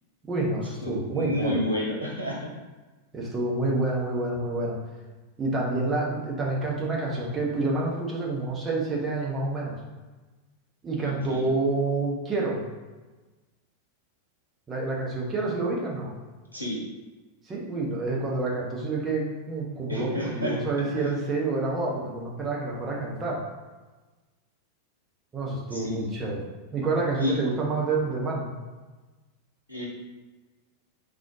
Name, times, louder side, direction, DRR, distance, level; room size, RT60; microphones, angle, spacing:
voice 1, 0.3-1.6 3.1-4.8 5.4-9.8 10.8-12.6 14.7-16.1 17.5-23.4 25.3-28.5, right 2 dB, 20° right, -3 dB, 1.2 m, -28 dB
voice 2, 0.8-2.4 11.0-11.4 16.5-16.8 19.9-20.6 21.0-21.1 25.7-26.0 27.2-27.4 29.7-29.9, left 1 dB, 90° left, -3 dB, 1.2 m, -30 dB
4.1 x 3.2 x 3.7 m, 1.3 s
figure-of-eight pair, 90°, 0 cm